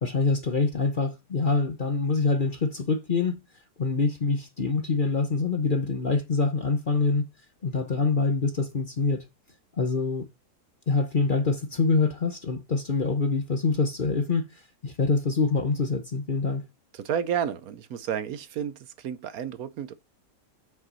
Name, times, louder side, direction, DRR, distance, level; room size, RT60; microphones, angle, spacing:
voice 1, 0.0-3.4 3.8-7.2 7.6-9.2 9.8-10.2 10.9-16.6, left 4 dB, 40° left, 0.9 m, -25 dB
voice 2, 16.9-19.9, right 8 dB, 70° right, 1.1 m, -31 dB
7.6 x 6.0 x 5.6 m
omnidirectional pair, 1.7 m